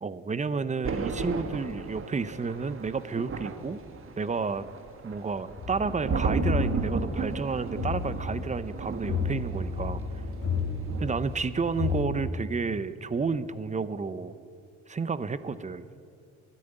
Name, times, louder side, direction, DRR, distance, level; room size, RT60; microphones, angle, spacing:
voice 1, 0.0-3.8 4.2-4.6 5.0-10.0 11.0-14.3 14.9-15.9, right 4 dB, 25° right, 14 dB, 0.6 m, -31 dB
Thunder, 0.8-11.4 11.7-12.0, right 4 dB, 45° right, 1.4 m, -34 dB
sound 1, 5.6-12.3, left 5 dB, 50° left, 3.4 m, -32 dB
12.5 x 10.5 x 9.0 m, 2.5 s
cardioid pair, 90°, 30 cm